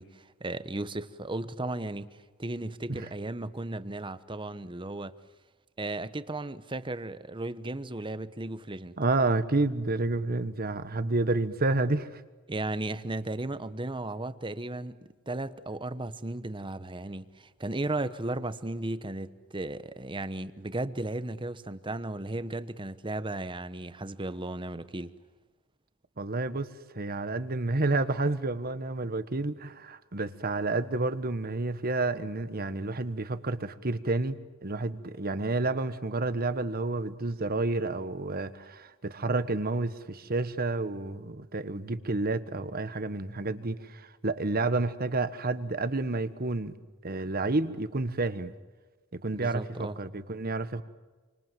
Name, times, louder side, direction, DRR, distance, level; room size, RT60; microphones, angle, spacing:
voice 1, 0.0-5.1 5.8-9.0 12.5-15.0 15.3-25.1 49.4-50.0, right 2 dB, 25° right, 1.0 m, -35 dB
voice 2, 9.0-12.2 26.2-34.4 34.6-46.7 47.0-48.5 49.1-50.8, right 2 dB, 45° right, 1.3 m, -30 dB
28.5 x 25.5 x 7.6 m
head